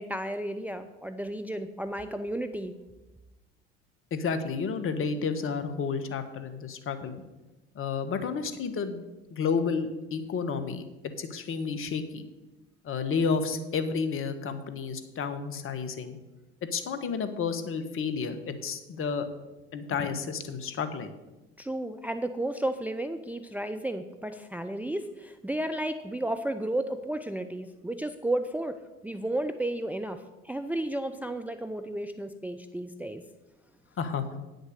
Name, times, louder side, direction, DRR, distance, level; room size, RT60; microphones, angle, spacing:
voice 1, 0.0-2.7 21.6-33.2, right 1 dB, 5° right, 8 dB, 0.6 m, -33 dB
voice 2, 4.1-7.2 7.7-9.0 9.3-10.8 11.2-12.3 12.8-16.2 16.6-19.3 19.7-21.1 34.0-34.4, left 5 dB, 40° left, 10 dB, 1.3 m, -31 dB
9.3 x 6.6 x 6.6 m, 1.1 s
hypercardioid pair, 70°, 32 cm